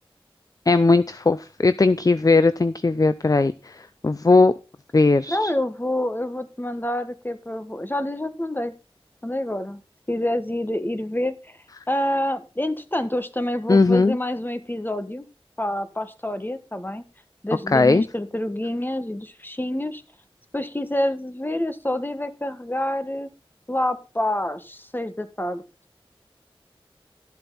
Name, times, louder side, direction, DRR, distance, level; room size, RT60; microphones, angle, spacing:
voice 1, 0.7-3.7 4.0-4.5 4.9-5.5 13.7-14.2 17.7-18.0, left 3 dB, 40° left, 14 dB, 0.5 m, -18 dB
voice 2, 5.3-8.7 9.2-9.8 10.1-11.6 11.9-15.3 15.6-17.0 17.4-20.0 20.5-23.3 23.7-25.6, left 1 dB, 20° left, 10 dB, 1.4 m, -27 dB
13.0 x 7.9 x 4.2 m, 0.32 s
wide cardioid pair, 50°, 10 cm